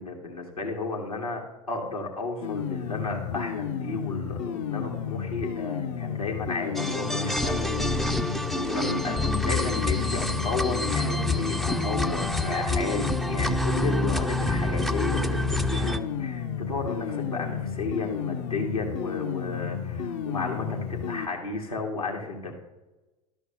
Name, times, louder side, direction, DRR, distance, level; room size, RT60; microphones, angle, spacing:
voice 1, 0.0-1.4 1.7-7.8 8.7-22.5, left 3 dB, 85° left, -2 dB, 2.0 m, -33 dB
sound 1, 2.4-21.3, left 7 dB, 55° left, 0.7 m, -32 dB
sound 2, 6.8-16.0, left 1 dB, ahead, 0.4 m, -27 dB
12.0 x 4.5 x 7.0 m, 1.1 s
figure-of-eight pair, 75°, 18 cm